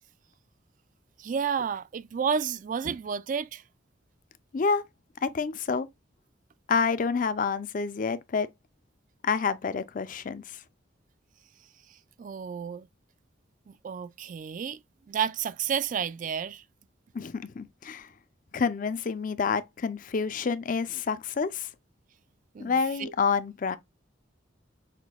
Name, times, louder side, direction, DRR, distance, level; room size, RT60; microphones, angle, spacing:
voice 1, 1.2-3.6 11.9-12.9 13.7-14.8 15.1-16.6 22.5-23.1, right 7 dB, 45° right, 0.3 m, -31 dB
voice 2, 4.5-4.8 5.2-5.9 6.7-8.5 9.2-10.6 17.1-18.1 18.5-21.7 22.6-23.8, left 5 dB, 45° left, 0.4 m, -28 dB
5.9 x 2.6 x 2.2 m
head